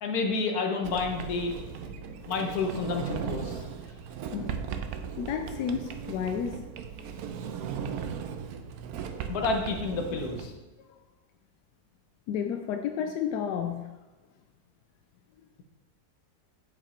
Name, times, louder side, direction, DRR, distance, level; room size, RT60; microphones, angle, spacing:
voice 1, 0.0-1.5 2.3-3.6 9.3-10.5, left 4 dB, 65° left, 3 dB, 1.5 m, -29 dB
Sliding door, 0.8-10.5, right 7 dB, 70° right, 1.1 m, -37 dB
voice 2, 4.3-4.8 5.2-6.6 10.8-11.0 12.3-13.9, left 7 dB, 85° left, 6 dB, 1.2 m, -32 dB
7.2 x 6.2 x 4.3 m, 1.2 s
omnidirectional pair, 1.7 m